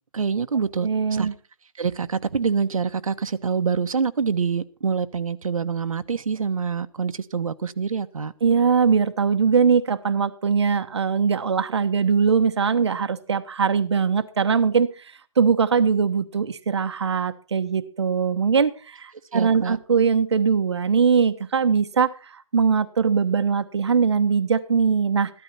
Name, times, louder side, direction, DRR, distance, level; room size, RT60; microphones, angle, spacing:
voice 1, 0.1-1.3 1.8-8.3 19.3-19.8, right 6 dB, 80° right, 9 dB, 1.2 m, -26 dB
voice 2, 0.8-1.3 8.4-25.3, right 6 dB, 55° right, 9 dB, 1.1 m, -21 dB
15.0 x 12.5 x 4.2 m, 0.36 s
hypercardioid pair, 180°, 17 cm